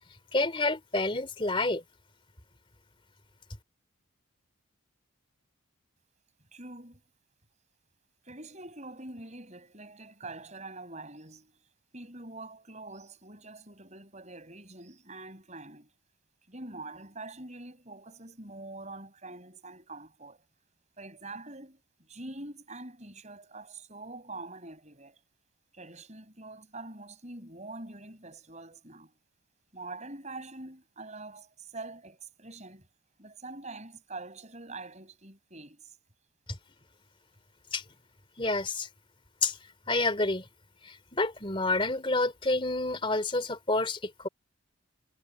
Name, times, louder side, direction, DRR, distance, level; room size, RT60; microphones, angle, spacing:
voice 1, 0.3-1.8 37.7-37.8 38.4-38.9 39.4-39.6 39.9-40.4 40.8-44.3, left 2 dB, 25° left, 3.3 m, -28 dB
voice 2, 6.5-7.0 8.2-11.5 11.9-15.9 16.5-20.4 21.0-25.2 25.7-29.1 29.7-32.9 33.2-35.9, right 2 dB, 30° right, 6.9 m, -45 dB
head